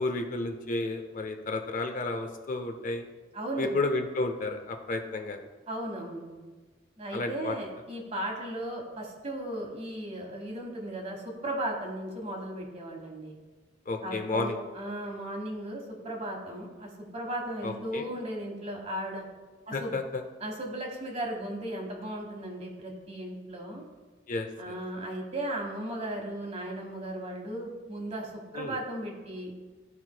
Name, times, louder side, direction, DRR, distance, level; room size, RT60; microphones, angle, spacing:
voice 1, 0.0-3.1 3.6-5.5 7.1-7.5 13.9-14.6 17.6-18.0 19.7-20.2 24.3-24.7 28.5-28.8, left 2 dB, 45° left, 5 dB, 0.5 m, -32 dB
voice 2, 3.3-3.7 5.7-6.5 7.0-13.4 14.0-19.2 19.7-19.9 20.4-23.8 24.6-29.5, right 1 dB, 35° right, 1 dB, 1.2 m, -36 dB
12.5 x 4.3 x 2.2 m, 1.3 s
head